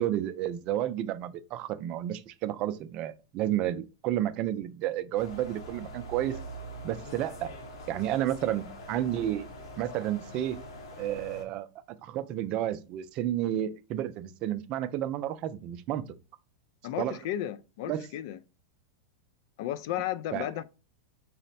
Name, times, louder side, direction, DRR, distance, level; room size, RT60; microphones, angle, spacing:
voice 1, 0.0-6.4 6.8-7.5 7.9-9.5 9.8-10.6 11.0-11.7 12.0-16.0 17.0-17.2 17.9-18.1 20.3-20.5, right 12 dB, 40° right, 0.4 m, -31 dB
sound 1, 5.1-11.4, equal, 75° left, 0.9 m, -43 dB
voice 2, 16.8-18.4 19.6-20.6, left 12 dB, 60° left, 0.3 m, -34 dB
4.0 x 2.1 x 4.0 m
supercardioid pair, 130°, 3 cm